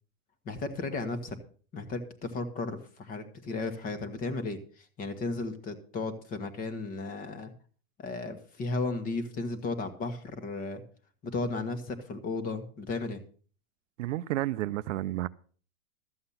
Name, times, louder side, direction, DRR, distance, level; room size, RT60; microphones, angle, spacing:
voice 1, 0.4-1.4 1.7-7.5 8.0-10.8 11.2-13.2, left 3 dB, 20° left, 1.2 m, -34 dB
voice 2, 14.0-15.3, right 15 dB, 60° right, 0.6 m, -31 dB
13.0 x 7.8 x 5.6 m
supercardioid pair, 155°, 43 cm